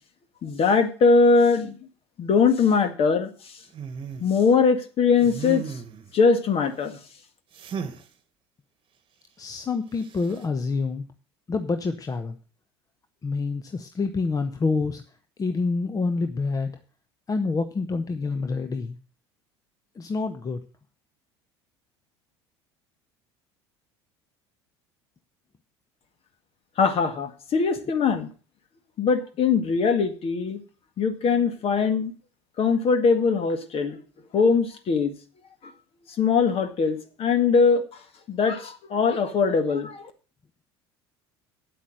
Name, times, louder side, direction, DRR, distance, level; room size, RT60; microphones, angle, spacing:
voice 1, 0.4-1.8 2.2-3.3 4.2-5.6 6.1-7.0 26.8-28.3 29.0-30.6 31.0-32.1 32.6-34.0 34.3-35.1 36.2-37.8 38.3-40.0, left 5 dB, 45° left, 9 dB, 1.8 m, -21 dB
sound 1, 3.7-4.3 5.2-6.1 7.5-8.0 10.0-10.4, right 6 dB, 40° right, 1.4 m, -35 dB
voice 2, 9.4-11.1 11.5-12.4 13.2-15.0 15.4-16.7 17.3-19.0 19.9-20.6, left 4 dB, 25° left, 9 dB, 1.0 m, -27 dB
9.5 x 8.3 x 6.3 m, 0.38 s
hypercardioid pair, 70°, 14 cm